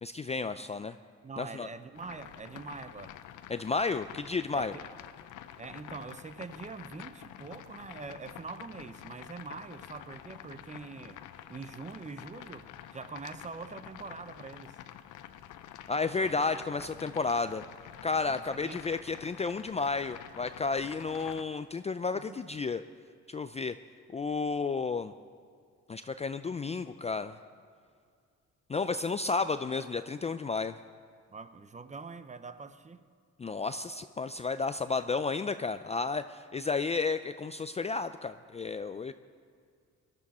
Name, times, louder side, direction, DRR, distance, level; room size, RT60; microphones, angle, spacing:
voice 1, 0.0-1.0 1.4-1.7 3.5-4.7 15.9-17.6 18.0-22.8 23.3-23.8 24.1-25.1 25.9-27.4 28.7-30.8 33.4-39.1, left 4 dB, 20° left, 10 dB, 0.4 m, -32 dB
voice 2, 1.2-3.2 4.5-4.9 5.6-11.2 11.5-14.8 16.2-16.3 18.2-18.8 22.1-22.4 31.3-33.0, right 4 dB, 25° right, 12 dB, 0.7 m, -44 dB
sound 1, 1.9-21.4, left 11 dB, 85° left, 0.7 m, -48 dB
19.5 x 12.0 x 4.2 m, 2.2 s
cardioid pair, 90°, 30 cm